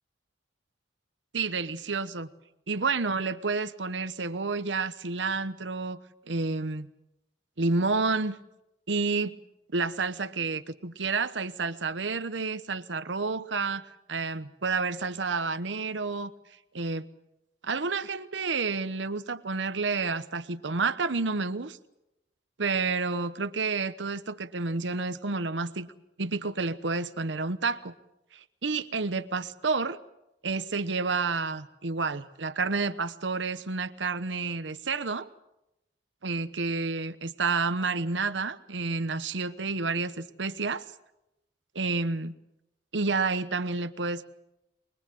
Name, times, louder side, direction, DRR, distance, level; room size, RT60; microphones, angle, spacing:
voice 1, 1.3-2.3 2.7-6.0 6.3-6.9 7.6-8.4 8.9-9.4 9.7-16.3 16.7-17.1 17.6-21.8 22.6-25.9 26.2-27.9 28.3-30.0 30.4-35.3 36.2-40.8 41.7-42.3 42.9-44.2, right 4 dB, 75° right, 11 dB, 1.0 m, -30 dB
24.5 x 21.5 x 7.7 m, 0.89 s
head